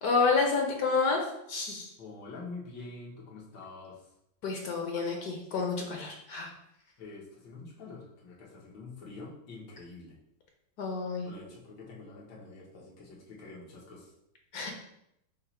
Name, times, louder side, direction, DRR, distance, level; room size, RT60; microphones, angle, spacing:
voice 1, 0.0-1.9 4.4-6.5 10.8-11.3 14.5-14.7, left 4 dB, 65° left, 1 dB, 1.0 m, -29 dB
voice 2, 2.0-4.0 7.0-10.1 11.2-14.1, left 3 dB, 90° left, -4 dB, 1.9 m, -46 dB
5.5 x 2.0 x 4.3 m, 0.79 s
omnidirectional pair, 2.0 m